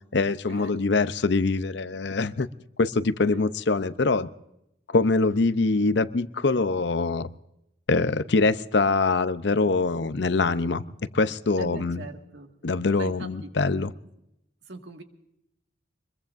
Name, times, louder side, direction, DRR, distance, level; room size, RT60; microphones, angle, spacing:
voice 1, 0.1-2.5 2.8-4.3 4.9-7.3 7.9-10.8 11.1-12.0 12.6-13.9, left 3 dB, 65° left, 13 dB, 0.6 m, -24 dB
voice 2, 11.6-12.5 13.0-13.5 14.7-15.0, right 2 dB, 70° right, 4 dB, 1.9 m, -40 dB
24.5 x 22.0 x 2.6 m, 0.81 s
head